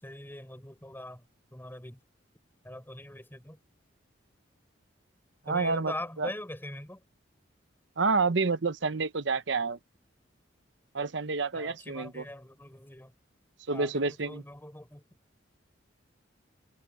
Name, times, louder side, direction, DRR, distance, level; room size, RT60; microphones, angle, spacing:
voice 1, 0.0-1.2 1.5-2.0 2.6-3.6 5.5-7.0 11.5-13.1 13.7-13.9 14.3-15.0, left 1 dB, 10° left, 4.1 m, -41 dB
voice 2, 5.5-6.3 8.0-9.8 10.9-12.3 13.7-14.4, right 4 dB, 65° right, 0.9 m, -29 dB
head